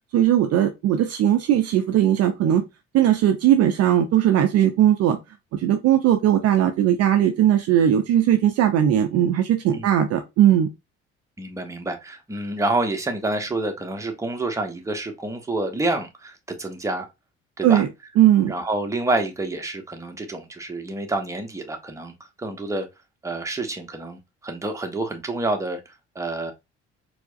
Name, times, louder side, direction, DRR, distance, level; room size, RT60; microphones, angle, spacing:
voice 1, 0.1-2.6 2.9-5.2 5.5-10.7 17.6-17.9 18.2-18.5, right 11 dB, 45° right, 0.5 m, -18 dB
voice 2, 11.4-16.3 16.6-17.1 17.6-17.8 18.5-22.1 22.4-22.9 23.2-26.5, right 2 dB, 10° right, 0.8 m, -28 dB
4.4 x 2.1 x 2.5 m
figure-of-eight pair, 50°, 35 cm